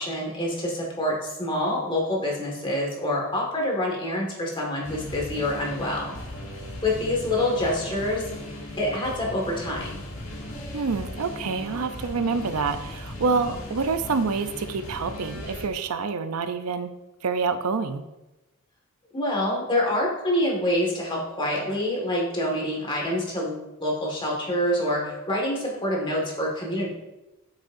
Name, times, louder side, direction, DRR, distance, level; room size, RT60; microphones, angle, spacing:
voice 1, 0.0-6.1 6.8-8.2 8.8-10.0 19.1-26.9, left 1 dB, 25° left, -2 dB, 1.8 m, -26 dB
sound 1, 4.8-15.6, left 1 dB, 70° left, 2.1 m, -37 dB
voice 2, 10.7-16.9 17.2-18.0, right 4 dB, 85° right, 10 dB, 0.5 m, -27 dB
8.3 x 6.3 x 2.6 m, 0.99 s
head